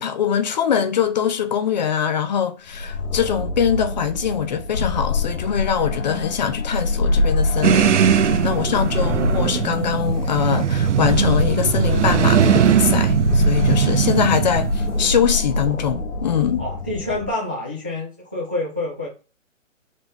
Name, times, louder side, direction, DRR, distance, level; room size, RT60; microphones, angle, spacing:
voice 1, 0.0-16.6, left 8 dB, 35° left, 0.7 m, -23 dB
sound 1, 2.7-17.3, left 2 dB, 85° left, 1.0 m, -24 dB
sound 2, 7.6-15.2, right 9 dB, 65° right, 0.6 m, -20 dB
voice 2, 8.5-9.1 16.6-19.1, left 2 dB, 10° right, 0.4 m, -28 dB
6.8 x 4.1 x 3.4 m
hypercardioid pair, 145°, 39 cm